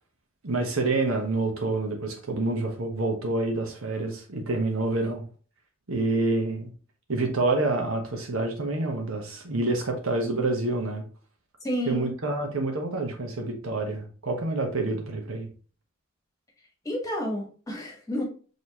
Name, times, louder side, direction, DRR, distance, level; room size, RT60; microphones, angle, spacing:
voice 1, 0.4-5.2 5.9-6.7 7.1-11.0 11.9-15.5, right 2 dB, 85° right, 1.2 m, -27 dB
voice 2, 11.6-12.1 16.8-18.2, equal, 15° left, 1.2 m, -30 dB
5.2 x 3.1 x 2.9 m
head